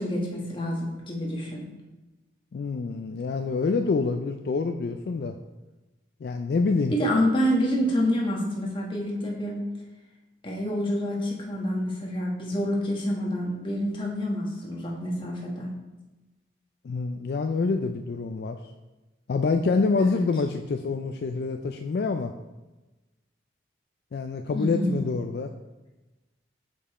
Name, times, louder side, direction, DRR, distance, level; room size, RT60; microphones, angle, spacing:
voice 1, 0.0-1.6 6.9-9.6 10.4-15.7 20.0-20.2 24.5-25.0, equal, 30° left, -2 dB, 1.3 m, -27 dB
voice 2, 2.5-5.4 6.2-6.9 16.8-18.6 19.3-22.3 24.1-25.5, left 4 dB, 60° left, 6 dB, 0.3 m, -26 dB
6.9 x 5.2 x 4.2 m, 1.1 s
head